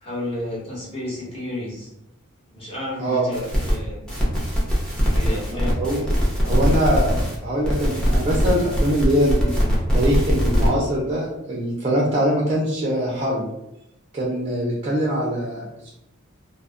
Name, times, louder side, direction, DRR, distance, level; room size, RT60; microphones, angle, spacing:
voice 1, 0.0-1.9 2.5-4.0 5.1-6.0, left 1 dB, 25° left, -6 dB, 1.1 m, -31 dB
sound 1, 3.3-3.7 4.1-7.3 7.6-10.7, equal, 5° left, 0.7 m, -21 dB
voice 2, 6.4-9.5 9.9-13.5 14.1-15.9, equal, 25° right, -4 dB, 0.5 m, -23 dB
2.3 x 2.1 x 3.5 m, 0.85 s
head